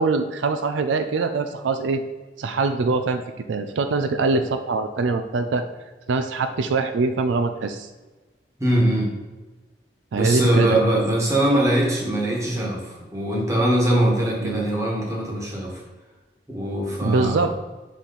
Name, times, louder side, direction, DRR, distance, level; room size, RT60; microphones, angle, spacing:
voice 1, 0.0-2.0 2.4-3.2 3.5-5.6 6.1-7.9 10.1-10.8 14.4-14.6 17.0-17.6, right 4 dB, 85° right, 8 dB, 0.4 m, -23 dB
voice 2, 8.6-9.1 10.1-15.8 16.5-17.5, right 1 dB, 15° right, -3 dB, 1.3 m, -22 dB
6.2 x 4.1 x 3.9 m, 1.2 s
head